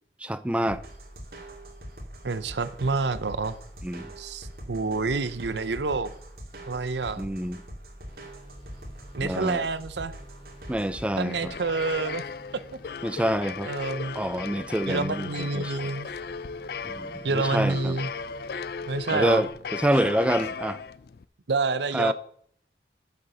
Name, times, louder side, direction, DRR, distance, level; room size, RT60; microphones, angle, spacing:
voice 1, 0.2-0.8 3.8-4.1 7.2-7.6 9.2-9.6 10.7-11.5 13.0-13.7 14.2-15.9 16.8-18.0 19.1-20.8 21.9-22.1, right 1 dB, 5° right, 0.4 m, -27 dB
sound 1, 0.7-11.1, right 1 dB, 55° right, 2.3 m, -43 dB
voice 2, 2.2-3.5 4.2-6.1 6.7-7.2 9.2-10.2 11.2-12.2 13.7-14.2 14.9-16.1 17.2-18.1 18.9-19.4 21.5-22.1, right 3 dB, 75° right, 0.7 m, -28 dB
sound 2, 8.1-19.5, equal, 30° left, 3.0 m, -52 dB
sound 3, 10.8-21.2, left 5 dB, 55° left, 0.4 m, -36 dB
9.1 x 7.1 x 6.5 m
head